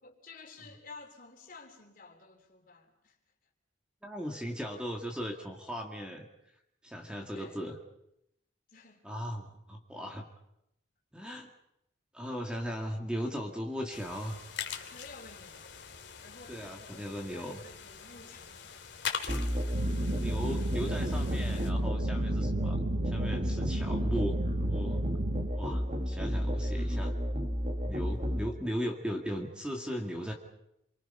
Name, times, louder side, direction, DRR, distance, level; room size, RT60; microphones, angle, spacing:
voice 1, 0.0-3.2 7.3-7.6 8.7-9.0 14.9-15.9 16.2-17.0 17.3-18.8 28.0-28.2, left 3 dB, 45° left, 3 dB, 3.6 m, -52 dB
voice 2, 4.0-6.3 6.8-7.8 9.0-10.3 11.1-11.5 12.1-14.4 16.5-17.6 20.1-22.8 23.0-24.4 24.7-25.0 25.5-27.1 27.9-30.3, equal, 5° right, 2 dB, 2.0 m, -37 dB
sound 1, 13.9-21.7, left 7 dB, 65° left, 2.5 m, -43 dB
Musical instrument, 19.3-28.5, equal, 35° right, 1.9 m, -32 dB
sound 2, 19.7-25.5, right 3 dB, 85° right, 0.8 m, -35 dB
28.5 x 23.5 x 5.6 m, 0.79 s
head